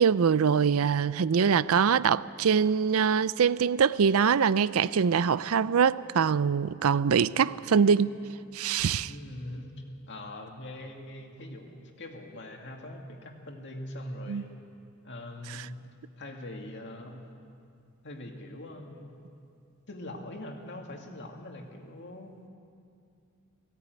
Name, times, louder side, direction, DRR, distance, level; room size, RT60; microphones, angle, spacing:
voice 1, 0.0-8.2 8.5-9.1 14.3-14.4, right 6 dB, 80° right, 0.5 m, -23 dB
voice 2, 9.0-9.7 10.1-14.5 15.0-15.8 16.2-17.3 18.0-19.2 19.9-22.3, left 1 dB, 55° left, 2.2 m, -42 dB
18.0 x 16.5 x 9.4 m
head